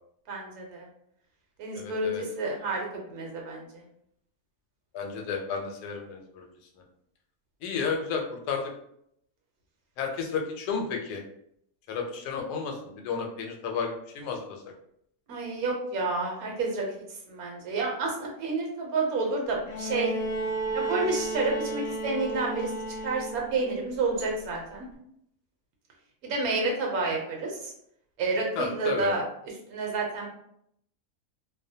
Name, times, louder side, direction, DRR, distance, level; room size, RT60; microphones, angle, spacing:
voice 1, 0.3-0.9 1.6-3.8 15.3-16.8 17.3-20.1 20.7-22.7 23.0-24.9 26.2-27.7 28.2-29.2 29.7-30.3, right 3 dB, 70° right, -1 dB, 1.1 m, -29 dB
voice 2, 1.7-2.2 4.9-6.5 7.6-8.7 10.0-11.2 11.9-14.6 28.6-29.1, left 5 dB, 85° left, 2 dB, 1.1 m, -32 dB
Bowed string instrument, 19.7-23.7 24.9-25.0, right 2 dB, 55° left, 0.7 m, -32 dB
2.6 x 2.1 x 2.6 m, 0.73 s
omnidirectional pair, 1.7 m